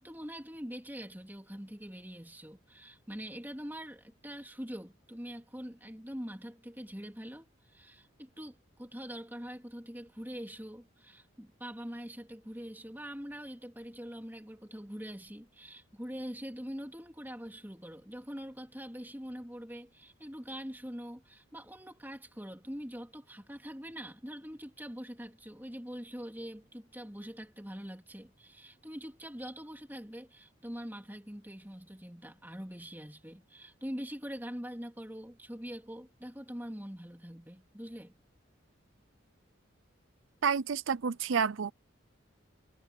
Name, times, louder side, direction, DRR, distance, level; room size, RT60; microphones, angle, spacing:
voice 1, 0.0-7.5 7.7-38.2, equal, 10° right, 3.5 m, -44 dB
voice 2, 40.4-41.7, right 6 dB, 75° right, 0.5 m, -29 dB
head